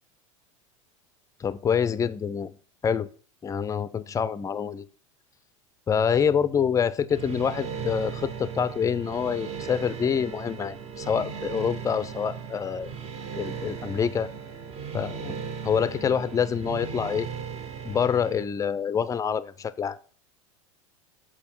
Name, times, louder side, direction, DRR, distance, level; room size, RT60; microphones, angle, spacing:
voice 1, 1.4-2.5 2.8-3.1 3.4-4.8 5.9-12.9 13.4-14.3 14.9-17.3 17.8-20.0, left 7 dB, 20° left, 15 dB, 0.4 m, -26 dB
sound 1, 7.1-18.4, right 6 dB, 35° right, 0.9 m, -37 dB
7.0 x 4.4 x 4.5 m, 0.42 s
hypercardioid pair, 95°, 17 cm